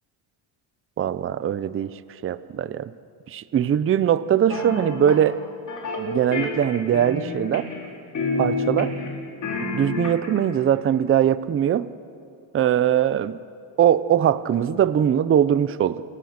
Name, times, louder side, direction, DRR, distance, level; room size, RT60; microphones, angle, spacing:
voice 1, 1.0-2.9 3.3-5.4 6.0-7.7 8.4-9.0 9.6-11.9 12.5-13.4 13.8-16.1, right 10 dB, 25° right, 15 dB, 0.6 m, -21 dB
sound 1, 4.5-5.2 5.7-6.0 6.3-7.9 8.1-9.1 9.4-10.4, left 3 dB, 35° left, 4.2 m, -28 dB
28.0 x 23.0 x 6.5 m, 2.6 s
cardioid pair, 155°, 49 cm